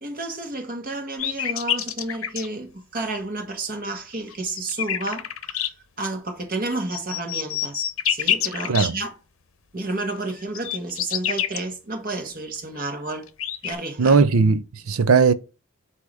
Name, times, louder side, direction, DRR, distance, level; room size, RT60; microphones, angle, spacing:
voice 1, 0.0-7.8 8.1-9.1 9.7-13.3 13.6-14.2, right 2 dB, 40° right, 1.5 m, -31 dB
sound 1, 1.2-2.5 4.3-5.7 6.7-8.9 10.3-11.6 12.8-12.9 13.1-13.7, left 10 dB, 65° left, 0.7 m, -26 dB
voice 2, 14.0-15.3, right 5 dB, 80° right, 0.6 m, -18 dB
8.2 x 2.9 x 6.2 m
head